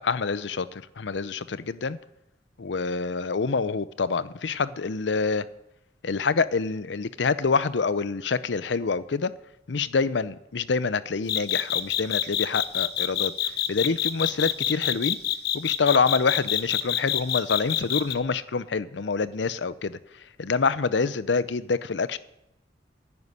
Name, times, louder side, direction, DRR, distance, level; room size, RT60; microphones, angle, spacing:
voice 1, 0.0-2.0 2.6-5.5 6.0-9.3 9.7-13.3 13.7-15.2 15.5-20.0 20.4-22.2, left 4 dB, 85° left, 15 dB, 0.6 m, -26 dB
sound 1, 11.3-18.2, left 11 dB, 60° left, 0.9 m, -26 dB
10.5 x 9.5 x 9.7 m, 0.89 s
head